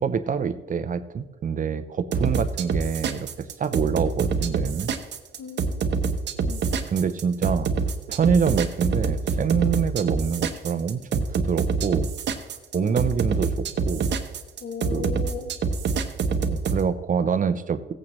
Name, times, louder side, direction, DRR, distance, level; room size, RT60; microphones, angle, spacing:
voice 1, 0.0-4.9 6.9-7.7 8.1-12.1 12.7-14.1 14.9-15.1 16.5-17.9, right 6 dB, 40° right, 12 dB, 0.7 m, -26 dB
sound 1, 2.1-16.8, right 5 dB, 60° right, 1.0 m, -25 dB
voice 2, 5.4-6.6 12.7-13.0 14.6-15.6, left 5 dB, 80° left, 2 dB, 2.1 m, -37 dB
16.0 x 8.7 x 3.1 m, 1.2 s
cardioid pair, 90°, 20 cm